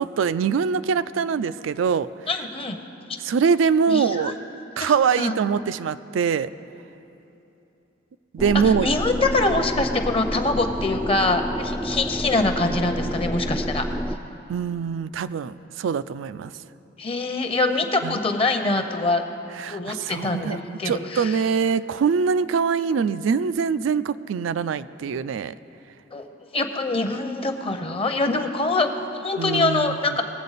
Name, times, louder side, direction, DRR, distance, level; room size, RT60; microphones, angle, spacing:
voice 1, 0.0-2.1 3.2-4.3 4.8-6.5 8.3-8.9 14.5-16.5 18.0-18.2 19.6-20.6 20.8-25.5 29.4-30.0, right 6 dB, 90° right, 15 dB, 0.3 m, -23 dB
voice 2, 2.3-2.8 3.9-4.3 4.8-5.4 8.8-13.8 17.0-19.2 19.7-21.4 26.1-26.2 26.5-30.2, left 2 dB, 30° left, 6 dB, 0.7 m, -24 dB
sound 1, 8.4-14.2, equal, 5° right, 0.3 m, -29 dB
20.0 x 7.6 x 4.1 m, 3.0 s
head